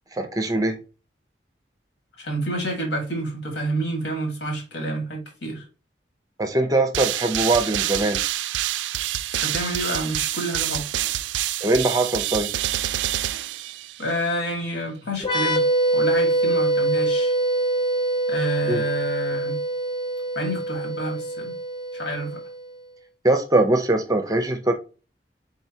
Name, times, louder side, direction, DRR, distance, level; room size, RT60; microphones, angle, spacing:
voice 1, 0.1-0.8 6.4-8.2 11.6-12.5 18.7-18.8 23.2-24.7, right 2 dB, 20° right, 0.5 m, -21 dB
voice 2, 2.2-5.6 9.3-10.9 14.0-15.6 15.9-17.3 18.3-19.6 20.4-21.5 21.9-22.4, right 1 dB, 70° left, 1.7 m, -28 dB
sound 1, 6.9-14.2, right 13 dB, 80° right, 0.3 m, -27 dB
sound 2, 15.2-22.7, right 2 dB, 25° left, 0.7 m, -24 dB
4.6 x 3.8 x 2.7 m
head